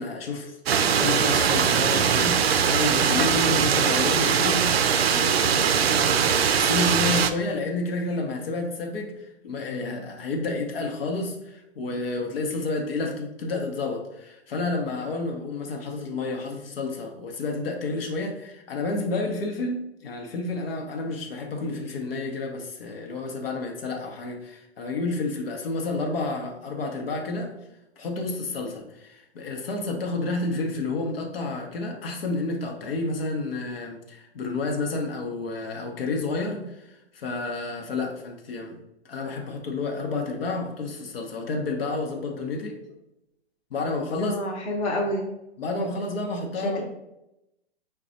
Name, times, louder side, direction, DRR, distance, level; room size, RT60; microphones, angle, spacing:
voice 1, 0.0-27.5 28.0-38.8 39.0-42.8 43.7-44.4 45.6-46.8, left 3 dB, 60° left, 2 dB, 0.9 m, -30 dB
sound 1, 0.7-7.3, right 7 dB, 65° right, 0.5 m, -21 dB
voice 2, 44.2-45.3 46.6-46.8, left 1 dB, 20° left, -2 dB, 0.9 m, -28 dB
4.8 x 2.3 x 3.9 m, 0.89 s
figure-of-eight pair, 120°, 33 cm